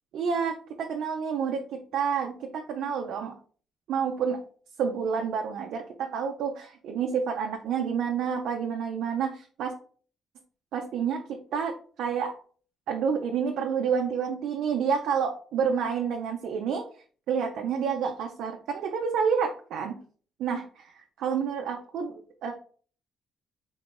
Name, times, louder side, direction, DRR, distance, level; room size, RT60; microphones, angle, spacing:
voice 1, 0.1-3.3 3.9-4.4 4.8-9.7 10.7-12.3 12.9-16.8 17.3-20.0 20.4-20.6 21.2-22.1 22.4-22.5, right 6 dB, 80° right, 2 dB, 0.5 m, -29 dB
3.7 x 2.4 x 3.7 m, 0.43 s
cardioid pair, 90°, 0 cm